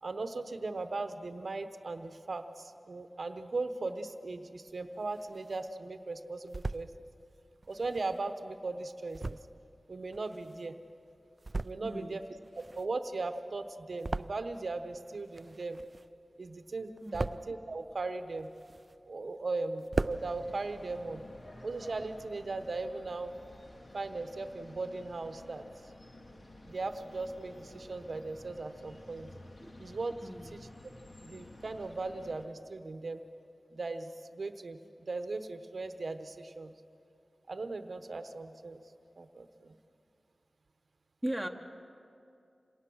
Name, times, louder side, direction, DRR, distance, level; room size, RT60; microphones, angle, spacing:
voice 1, 0.0-6.9 7.7-9.4 9.9-10.8 11.6-12.2 12.5-15.8 16.4-18.5 19.1-21.2 21.6-23.3 23.9-25.6 26.6-29.3 29.8-30.1 30.5-30.6 31.2-33.2 33.7-36.7 37.5-38.8 39.2-39.7, right 3 dB, 70° right, 8 dB, 0.9 m, -38 dB
sound 1, 4.7-5.7 6.2-6.9 7.6-10.9 11.3-12.1 12.3-14.8 15.0-16.3 16.6-17.6 18.1-19.2 19.5-19.6 19.8-20.2, right 2 dB, 50° right, 0.4 m, -39 dB
voice 2, 11.8-12.2 17.0-17.2 29.6-29.7 30.2-30.5 41.2-41.5, right 1 dB, ahead, 1 dB, 1.3 m, -37 dB
sound 2, 20.1-32.5, left 1 dB, 60° left, 2.3 m, -52 dB
27.0 x 18.5 x 6.3 m, 2.6 s
wide cardioid pair, 50°, 0 cm